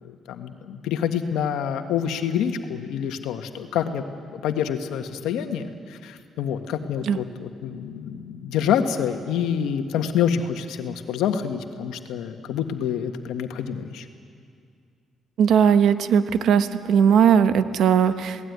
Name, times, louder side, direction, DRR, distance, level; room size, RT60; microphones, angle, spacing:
voice 1, 0.0-4.0 4.3-14.1, left 8 dB, 90° left, 6 dB, 1.6 m, -27 dB
voice 2, 15.4-18.4, right 7 dB, 75° right, 10 dB, 1.1 m, -18 dB
27.5 x 18.5 x 9.6 m, 2.2 s
cardioid pair, 90°, 0 cm